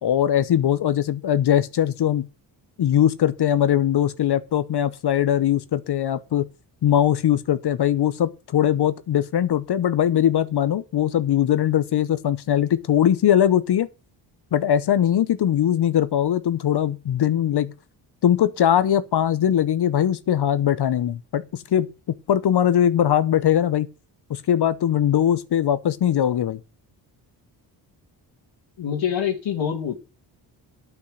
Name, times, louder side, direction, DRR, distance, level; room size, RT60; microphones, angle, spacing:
voice 1, 0.0-2.3 2.8-6.5 6.8-13.9 14.5-17.7 18.2-21.9 22.3-23.9 24.3-26.6, left 10 dB, 55° left, 0.9 m, -21 dB
voice 2, 28.8-30.0, left 8 dB, 75° left, 2.1 m, -25 dB
8.8 x 8.3 x 6.4 m
cardioid pair, 65°, 47 cm